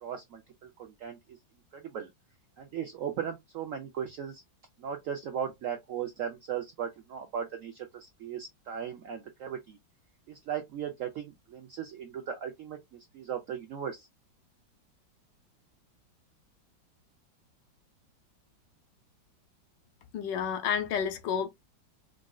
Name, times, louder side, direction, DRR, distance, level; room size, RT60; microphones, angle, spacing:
voice 1, 0.0-1.4 1.7-2.1 2.6-4.4 4.8-9.8 10.3-14.1, right 8 dB, 85° right, 0.7 m, -37 dB
voice 2, 20.1-21.5, left 7 dB, 75° left, 1.2 m, -30 dB
5.0 x 2.4 x 2.2 m
omnidirectional pair, 2.1 m